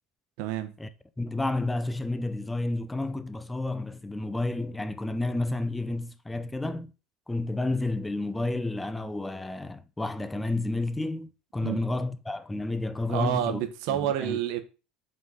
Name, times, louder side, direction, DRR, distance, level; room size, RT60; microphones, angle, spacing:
voice 1, 0.4-0.7 11.6-11.8 13.1-14.6, right 11 dB, 75° right, 1.0 m, -29 dB
voice 2, 1.2-6.9 7.3-13.6 13.9-14.4, left 2 dB, 10° left, 0.6 m, -31 dB
5.5 x 4.0 x 5.4 m
supercardioid pair, 115°, 0 cm